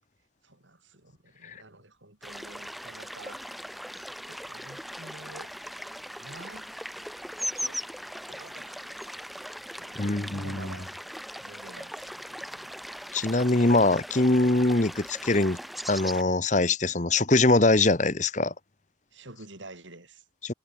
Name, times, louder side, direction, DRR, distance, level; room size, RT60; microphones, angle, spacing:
voice 1, 0.4-3.4 4.3-5.5 6.2-6.7 7.5-7.8 8.3-10.9 11.4-12.8 19.1-20.2, right 2 dB, 75° right, 5.8 m, -49 dB
sound 1, 2.2-16.2, equal, ahead, 1.8 m, -39 dB
voice 2, 10.0-10.7 13.1-15.6 15.9-18.5 20.4-20.5, left 2 dB, 40° left, 1.2 m, -23 dB
head